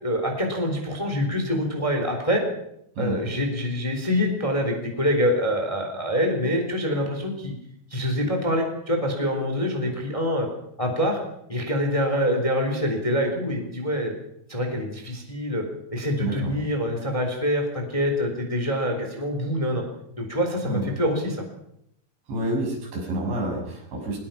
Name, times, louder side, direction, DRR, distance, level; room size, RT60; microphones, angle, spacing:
voice 1, 0.0-2.4 3.0-7.5 7.9-10.5 10.8-11.2 11.5-14.1 14.5-15.6 15.9-19.8 20.2-21.4, equal, 10° left, 3 dB, 3.3 m, -25 dB
voice 2, 16.2-16.5 20.6-20.9 22.3-24.2, right 1 dB, 80° right, 0 dB, 9.5 m, -28 dB
24.0 x 20.5 x 5.9 m, 0.76 s
omnidirectional pair, 5.1 m